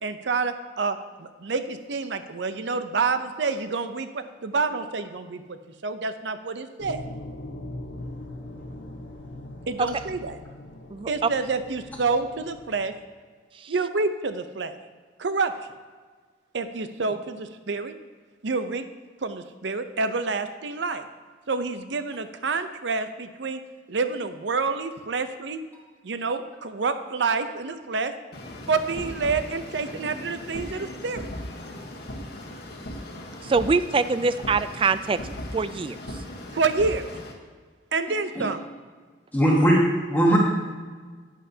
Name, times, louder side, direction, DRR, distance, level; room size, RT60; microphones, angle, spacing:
voice 1, 0.0-7.1 9.7-10.4 11.1-12.9 13.7-14.8 15.2-15.5 16.5-17.9 18.4-18.9 19.2-21.0 21.5-23.6 23.9-25.6 26.0-28.1 28.7-31.3 36.5-37.1 37.9-38.6, right 4 dB, 75° right, 10 dB, 0.6 m, -28 dB
sound 1, 6.8-13.0, left 1 dB, 80° left, 1.0 m, -40 dB
sound 2, 28.3-37.3, left 1 dB, 60° left, 1.2 m, -38 dB
voice 2, 33.4-35.2 35.5-36.0, right 4 dB, 30° right, 13 dB, 0.3 m, -23 dB
voice 3, 39.3-40.4, right 1 dB, 10° left, -3 dB, 1.6 m, -19 dB
11.0 x 9.8 x 2.8 m, 1.5 s
head